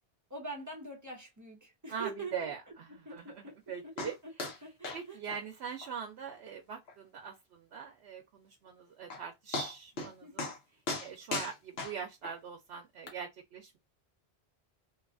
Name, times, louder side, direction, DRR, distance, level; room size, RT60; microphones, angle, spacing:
voice 1, 0.3-2.5 3.0-5.2 10.2-10.5, right 3 dB, 20° right, 0.7 m, -45 dB
voice 2, 1.9-4.2 4.9-10.5 11.0-13.8, right 7 dB, 85° right, 0.9 m, -42 dB
sound 1, 4.0-4.1 4.4-4.6 4.8-5.0 5.3-5.4 5.8-5.9 6.3-6.4 6.9-7.0 8.7-8.8 9.1-9.2 9.5-10.1 10.4-10.6 10.9-12.4 13.1-13.2, left 3 dB, 75° left, 1.1 m, -37 dB
2.9 x 2.3 x 2.4 m
omnidirectional pair, 1.1 m